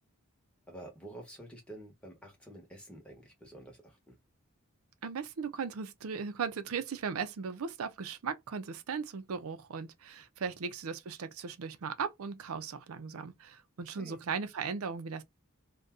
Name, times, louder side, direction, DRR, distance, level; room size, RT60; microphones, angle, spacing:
voice 1, 0.7-4.2 10.4-10.5 14.0-14.2, right 1 dB, 5° left, 0.9 m, -49 dB
voice 2, 5.0-15.2, right 5 dB, 80° right, 0.5 m, -37 dB
2.6 x 2.2 x 3.5 m
head